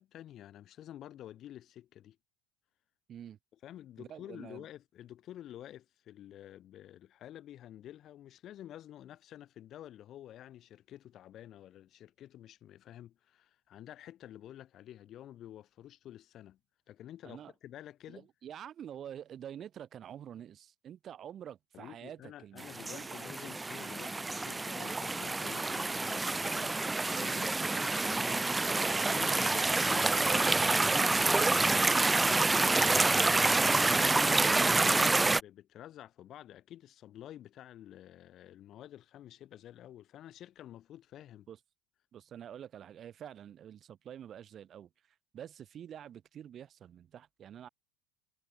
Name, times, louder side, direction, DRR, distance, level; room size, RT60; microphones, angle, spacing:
voice 1, 0.0-2.2 3.6-16.6 16.9-18.3 21.7-26.8 27.2-28.2 29.1-41.5, left 12 dB, 45° left, 6.1 m, -50 dB
voice 2, 4.0-4.7 17.2-17.5 18.1-23.2 41.5-41.6 42.1-44.9 45.3-47.7, right 9 dB, 40° right, 7.3 m, -47 dB
sound 1, 22.6-35.4, right 3 dB, 10° right, 1.4 m, -28 dB
supercardioid pair, 120°, 0 cm